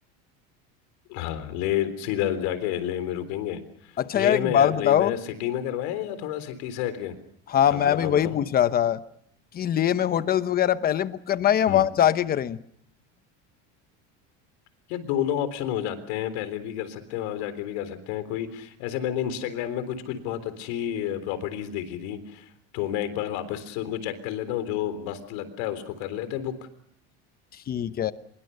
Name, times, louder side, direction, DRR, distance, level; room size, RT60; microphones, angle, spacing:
voice 1, 1.1-3.6 4.1-7.2 7.7-8.4 11.7-11.8 14.9-26.5, left 11 dB, 75° left, 12 dB, 3.8 m, -30 dB
voice 2, 4.0-5.1 7.5-9.0 9.5-12.6 27.7-28.1, left 10 dB, 25° left, 13 dB, 0.9 m, -22 dB
25.0 x 22.5 x 6.7 m, 0.72 s
cardioid pair, 145°, 34 cm